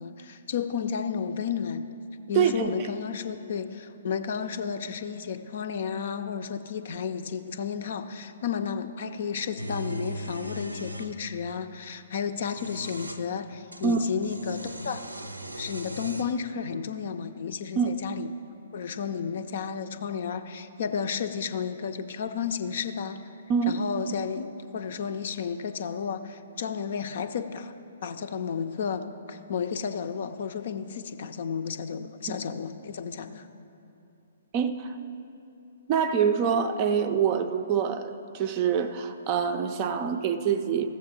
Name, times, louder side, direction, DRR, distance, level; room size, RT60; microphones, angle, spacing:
voice 1, 0.0-1.9 2.3-15.0 15.6-18.3 18.7-23.2 23.7-27.7 28.0-33.5, left 6 dB, 50° left, 9 dB, 0.5 m, -32 dB
voice 2, 2.3-2.7 13.8-14.0 17.8-17.9 23.5-23.8 32.3-32.4 34.5-35.0 35.9-40.9, right 7 dB, 30° right, 9 dB, 0.5 m, -25 dB
sound 1, 9.6-11.1 12.3-13.2 13.7-16.4, right 1 dB, 85° right, 0.6 m, -38 dB
14.0 x 7.4 x 4.2 m, 2.8 s
figure-of-eight pair, 125°, 0 cm